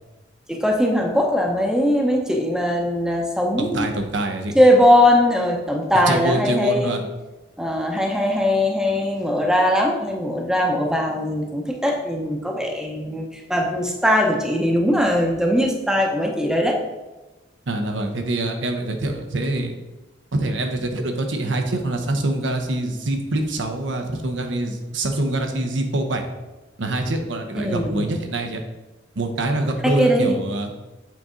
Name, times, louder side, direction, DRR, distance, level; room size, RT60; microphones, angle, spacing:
voice 1, 0.5-3.9 4.5-7.0 7.6-16.8 27.6-28.0 29.8-30.4, left 1 dB, 5° right, 1 dB, 0.8 m, -20 dB
voice 2, 3.6-4.5 6.1-7.0 17.7-19.7 20.3-26.2 26.8-28.6 29.2-30.7, right 2 dB, 75° right, 4 dB, 0.9 m, -25 dB
7.5 x 4.1 x 3.8 m, 1.1 s
head